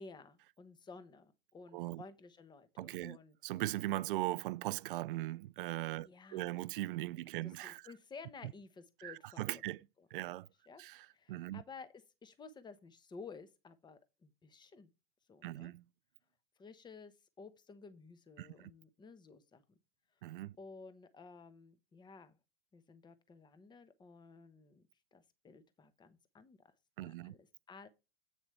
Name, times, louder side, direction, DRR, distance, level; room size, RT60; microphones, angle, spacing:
voice 1, 0.0-3.4 6.0-6.6 7.4-9.6 10.7-10.8 11.1-11.9 12.2-14.9 15.3-15.7 16.6-19.8 20.6-22.4 22.7-26.6 27.0-27.9, left 4 dB, 15° left, 1.0 m, -54 dB
voice 2, 1.7-2.0 2.8-3.2 3.4-7.8 9.0-9.9 10.1-10.5 10.8-11.6 15.4-15.8 18.4-18.7 20.2-20.6 27.0-27.3, right 16 dB, 65° right, 0.5 m, -39 dB
8.3 x 7.2 x 3.2 m
hypercardioid pair, 110°, 29 cm